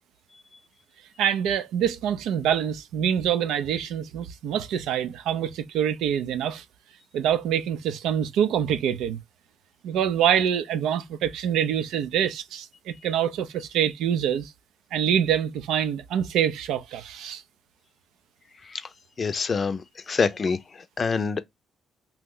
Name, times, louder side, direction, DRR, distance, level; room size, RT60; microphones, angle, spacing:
voice 1, 1.2-6.6 7.1-9.2 9.8-14.5 14.9-17.4, right 9 dB, 85° right, 0.4 m, -25 dB
voice 2, 19.2-19.8 20.1-21.4, left 5 dB, 40° left, 0.5 m, -26 dB
2.9 x 2.1 x 3.7 m
cardioid pair, 90°, 0 cm